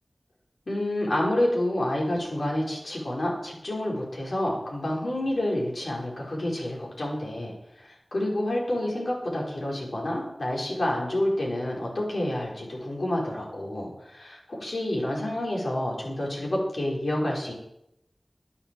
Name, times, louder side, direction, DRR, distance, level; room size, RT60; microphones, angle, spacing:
voice 1, 0.7-17.5, left 1 dB, 80° left, -3 dB, 4.9 m, -29 dB
11.0 x 9.6 x 7.7 m, 0.81 s
wide cardioid pair, 45°, 0 cm